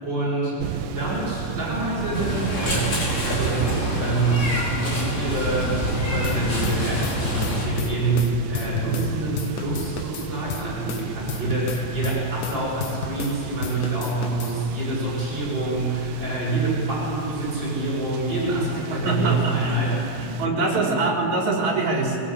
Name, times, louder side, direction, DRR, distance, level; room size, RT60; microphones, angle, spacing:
voice 1, 0.0-2.9 3.2-20.9, right 2 dB, 30° right, -6 dB, 7.9 m, -26 dB
sound 1, 0.6-20.5, right 8 dB, 75° right, 2.4 m, -33 dB
Meow, 2.1-7.7, left 1 dB, 40° left, 5.9 m, -27 dB
sound 2, 6.2-9.1 9.4-13.4 13.6-14.6, left 6 dB, 65° left, 2.7 m, -33 dB
voice 2, 18.6-22.2, right 3 dB, 50° right, -1 dB, 5.0 m, -25 dB
22.5 x 22.0 x 8.7 m, 2.8 s
omnidirectional pair, 4.2 m